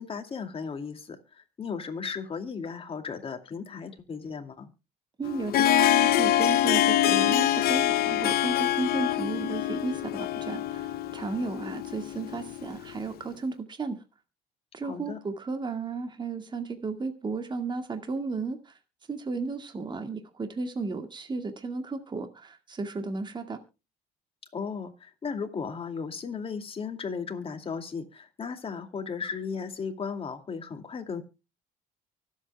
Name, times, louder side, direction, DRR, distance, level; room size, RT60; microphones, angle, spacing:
voice 1, 0.0-4.7 14.8-15.2 24.5-31.2, left 5 dB, 35° left, 6 dB, 2.4 m, -36 dB
Harp, 5.2-13.0, left 13 dB, 65° left, 0.8 m, -25 dB
voice 2, 5.2-14.0 14.7-18.6 19.1-23.6, right 4 dB, 25° right, 7 dB, 2.0 m, -34 dB
24.0 x 8.3 x 2.3 m, 0.29 s
cardioid pair, 110°, 17 cm